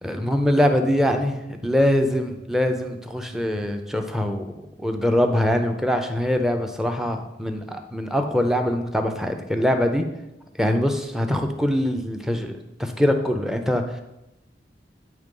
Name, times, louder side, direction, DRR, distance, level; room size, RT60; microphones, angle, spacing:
voice 1, 0.0-4.5 4.8-10.0 10.6-14.0, left 1 dB, ahead, 5 dB, 0.5 m, -23 dB
9.5 x 3.2 x 5.3 m, 0.94 s
head